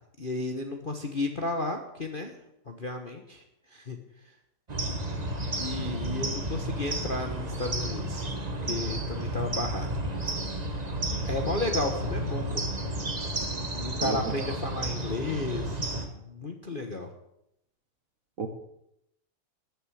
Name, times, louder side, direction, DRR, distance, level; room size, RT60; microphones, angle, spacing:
voice 1, 0.2-2.3 2.7-3.4 3.7-4.0 5.6-8.3 8.7-9.9 11.2-12.6 13.7-17.1, left 2 dB, 35° left, 4 dB, 0.9 m, -33 dB
sound 1, 4.7-16.1, right 1 dB, 25° right, 1.2 m, -32 dB
voice 2, 14.0-14.5 18.4-18.5, right 4 dB, 50° right, 6 dB, 1.2 m, -32 dB
12.5 x 6.9 x 9.7 m, 0.80 s
omnidirectional pair, 2.4 m